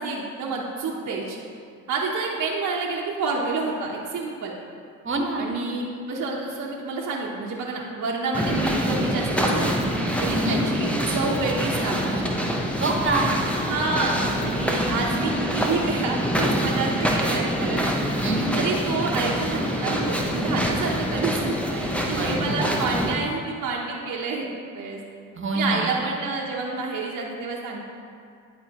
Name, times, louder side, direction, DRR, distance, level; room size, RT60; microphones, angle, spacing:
voice 1, 0.0-1.4 1.9-4.5 5.4-9.8 10.2-12.2 13.7-17.9 18.5-24.5 24.7-25.0 25.5-27.8, right 3 dB, 50° right, -4 dB, 1.1 m, -28 dB
voice 2, 5.0-5.4 10.3-10.6 12.8-13.3 18.2-18.5 22.1-22.6 25.3-25.9, right 2 dB, 30° right, 1 dB, 1.4 m, -26 dB
sound 1, 8.3-23.1, equal, 5° left, 1.0 m, -25 dB
11.0 x 4.3 x 3.0 m, 2.4 s
hypercardioid pair, 55°, 38 cm